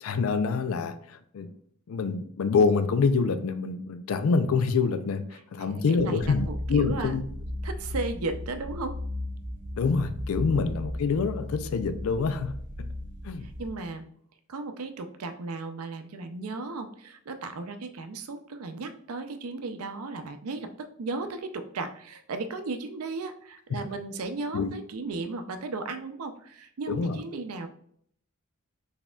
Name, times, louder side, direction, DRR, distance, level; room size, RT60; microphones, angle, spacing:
voice 1, 0.0-1.5 1.9-5.3 5.5-7.2 9.8-12.9 13.2-13.5 23.7-23.8 24.5-24.7 26.9-27.2, left 5 dB, 70° left, 0.4 m, -26 dB
voice 2, 5.6-7.2 7.6-9.0 10.6-10.7 13.4-14.1 14.5-27.7, right 3 dB, 85° right, 0.5 m, -35 dB
sound 1, 6.2-13.7, left 1 dB, 40° right, 1.1 m, -36 dB
4.2 x 3.5 x 2.3 m
head